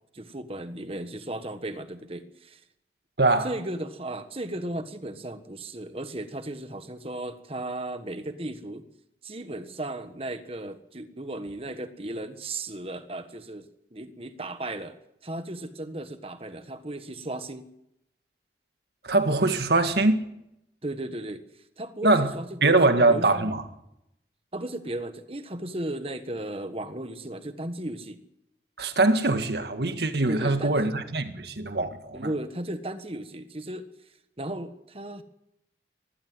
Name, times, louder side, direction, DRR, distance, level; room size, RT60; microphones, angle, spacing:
voice 1, 0.1-2.6 3.4-8.9 9.2-15.0 15.2-17.7 20.8-21.4 21.8-22.8 23.1-23.5 24.5-28.2 30.3-30.8 32.1-33.8 34.4-35.2, right 1 dB, 30° right, 1.5 m, -35 dB
voice 2, 3.2-3.5 19.0-20.2 22.0-22.3 22.6-23.6 28.8-32.3, right 2 dB, 65° right, 1.9 m, -22 dB
20.0 x 15.5 x 9.7 m
head